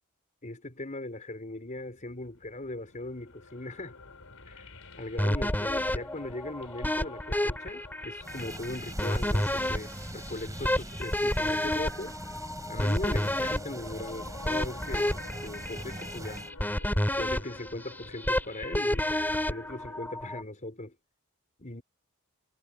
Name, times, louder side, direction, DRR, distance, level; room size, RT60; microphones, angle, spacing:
voice 1, 0.4-3.9 4.5-12.2 12.7-16.5 17.2-19.1 19.5-20.9 21.6-21.8, left 2 dB, 35° left, 4.2 m, -39 dB
sound 1, 1.5-20.0, left 3 dB, 70° left, 5.9 m, -52 dB
sound 2, 5.2-20.4, left 1 dB, 10° left, 2.8 m, -30 dB
sound 3, 8.2-16.5, right 1 dB, 15° right, 4.2 m, -42 dB
head